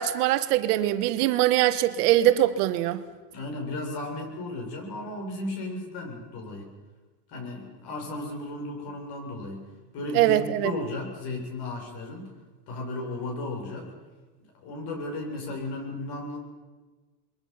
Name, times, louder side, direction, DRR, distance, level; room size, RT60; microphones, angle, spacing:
voice 1, 0.0-3.0 10.1-10.7, right 14 dB, 65° right, 11 dB, 1.5 m, -22 dB
voice 2, 3.3-6.7 7.3-9.7 9.9-12.3 12.7-13.9 14.6-16.4, left 2 dB, 50° left, 1 dB, 8.0 m, -35 dB
28.0 x 22.0 x 5.9 m, 1.3 s
hypercardioid pair, 100°, 49 cm